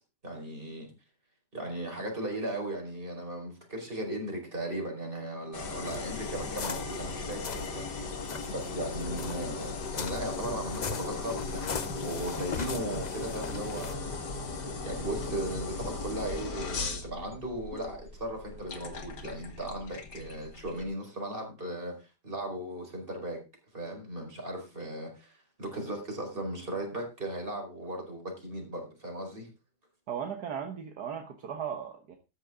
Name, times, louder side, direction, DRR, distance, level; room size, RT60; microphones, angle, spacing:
voice 1, 0.2-0.9 1.5-8.2 8.5-14.1 14.8-23.4 23.7-29.5, right 1 dB, 30° right, 5.2 m, -37 dB
sound 1, 5.5-20.9, left 3 dB, 75° left, 2.3 m, -37 dB
sound 2, 5.8-7.8 8.2-13.9, left 6 dB, 55° left, 0.5 m, -40 dB
voice 2, 30.1-32.2, right 8 dB, 70° right, 1.8 m, -36 dB
13.5 x 10.0 x 3.7 m
omnidirectional pair, 1.8 m